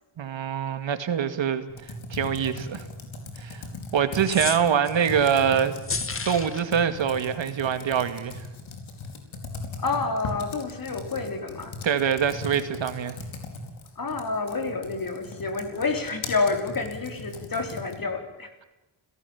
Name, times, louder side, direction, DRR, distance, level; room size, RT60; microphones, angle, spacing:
voice 1, 0.2-2.8 3.4-3.6 3.9-5.7 6.2-8.4 11.8-13.2, right 8 dB, 70° right, 10 dB, 2.1 m, -24 dB
Computer keyboard, 1.7-18.1, left 3 dB, 80° left, 4.7 m, -39 dB
sound 1, 4.2-5.1 5.8-6.6, left 4 dB, 25° left, 1.5 m, -31 dB
voice 2, 9.8-11.7 14.0-18.5, left 4 dB, 45° left, 5 dB, 4.1 m, -29 dB
30.0 x 18.0 x 7.2 m, 1.0 s
wide cardioid pair, 125°, 47 cm